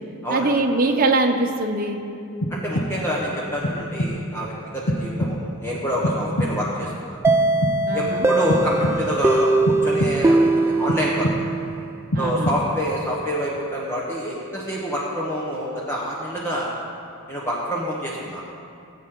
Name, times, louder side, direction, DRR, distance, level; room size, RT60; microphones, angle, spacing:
voice 1, 0.3-2.0 7.9-8.3 12.1-12.5, right 2 dB, 40° right, 2 dB, 1.0 m, -22 dB
sound 1, 2.4-3.2 3.6-4.4 4.9-5.7 6.0-6.8 7.3-8.1 8.5-9.3 9.7-10.5 10.9-11.7 12.1-12.9, equal, 65° left, 0.9 m, -26 dB
voice 2, 2.5-7.2 7.9-9.5 9.8-11.3 12.2-16.7 17.3-18.4, equal, 10° left, -5 dB, 1.3 m, -27 dB
sound 2, 7.2-11.9, right 2 dB, 10° right, 0.3 m, -21 dB
18.5 x 8.4 x 3.9 m, 2.6 s
head